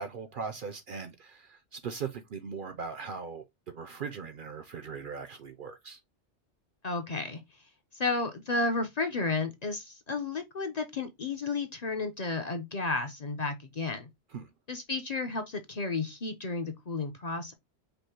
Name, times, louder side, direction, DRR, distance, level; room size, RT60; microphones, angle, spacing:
voice 1, 0.0-6.0 14.3-14.5, right 5 dB, 55° right, 0.6 m, -39 dB
voice 2, 6.8-7.4 8.0-14.1 14.7-17.5, left 3 dB, 40° left, 0.7 m, -32 dB
5.2 x 2.1 x 4.4 m
omnidirectional pair, 1.2 m